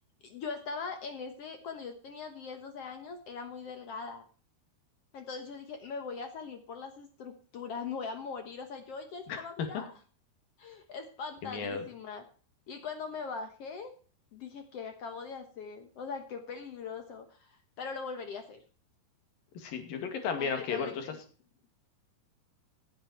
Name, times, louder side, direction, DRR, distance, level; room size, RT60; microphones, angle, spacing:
voice 1, 0.2-4.3 5.1-9.9 10.6-12.2 12.7-13.9 14.3-18.6 20.4-21.2, left 5 dB, 80° left, 7 dB, 1.3 m, -41 dB
voice 2, 11.4-11.8 19.6-21.0, left 6 dB, 65° left, 7 dB, 3.8 m, -34 dB
15.5 x 9.0 x 4.4 m, 0.39 s
omnidirectional pair, 4.7 m